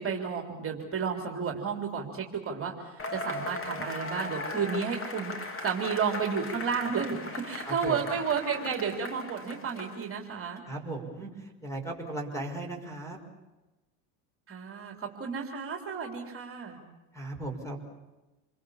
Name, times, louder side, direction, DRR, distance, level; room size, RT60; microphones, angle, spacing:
voice 1, 0.0-10.6 14.5-16.8, right 6 dB, 30° right, 2 dB, 3.7 m, -32 dB
Cheering / Applause / Crowd, 3.0-10.2, left 2 dB, 30° left, 2.9 m, -38 dB
voice 2, 7.6-8.2 10.6-13.2 17.1-17.8, right 2 dB, 5° left, 5 dB, 5.8 m, -37 dB
28.5 x 22.0 x 7.3 m, 1.1 s
supercardioid pair, 100°, 43 cm